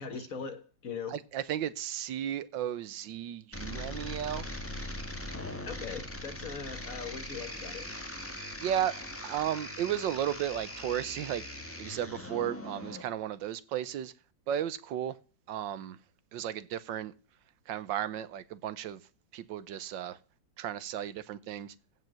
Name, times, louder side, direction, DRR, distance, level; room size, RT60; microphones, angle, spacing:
voice 1, 0.0-1.2 5.7-7.9, left 5 dB, 50° left, 1.8 m, -40 dB
voice 2, 1.1-4.4 8.6-9.0 9.2-11.4 11.8-14.1 14.5-15.2 15.5-16.0 16.3-17.1 17.7-19.0 19.3-20.2 20.6-21.7, right 10 dB, 80° right, 1.5 m, -34 dB
sound 1, 3.5-13.0, left 1 dB, 5° left, 1.6 m, -41 dB
15.5 x 5.5 x 7.5 m
omnidirectional pair, 2.0 m